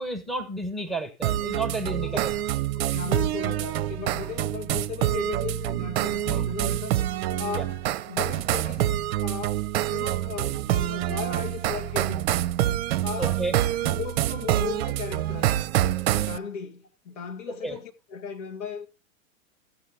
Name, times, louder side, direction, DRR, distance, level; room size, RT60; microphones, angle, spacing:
voice 1, 0.0-2.3 6.3-6.4 7.6-7.7 13.2-13.5 17.6-17.8, right 2 dB, ahead, 1.4 m, -31 dB
sound 1, 1.2-16.4, right 13 dB, 45° right, 0.7 m, -26 dB
voice 2, 2.7-7.0 7.4-7.8 8.1-8.9 9.2-12.4 13.0-13.5 13.8-15.6 16.1-18.9, left 6 dB, 60° left, 1.9 m, -36 dB
14.0 x 7.7 x 3.8 m
figure-of-eight pair, 100°, 42 cm